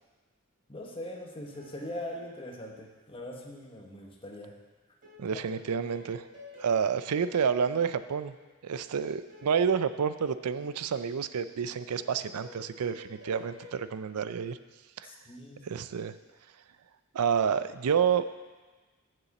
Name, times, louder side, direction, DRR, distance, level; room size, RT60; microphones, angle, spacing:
voice 1, 0.7-4.6 5.3-5.4 15.0-15.8, left 1 dB, 25° left, 0 dB, 1.1 m, -41 dB
sound 1, 1.5-3.0 5.0-8.7 9.3-10.8 12.0-13.8, left 3 dB, 40° right, 2.8 m, -52 dB
voice 2, 5.2-6.2 6.6-8.3 8.6-14.6 15.0-15.1 15.6-16.1 17.1-18.2, right 7 dB, 85° right, 13 dB, 0.4 m, -29 dB
7.1 x 6.8 x 7.1 m, 1.3 s
head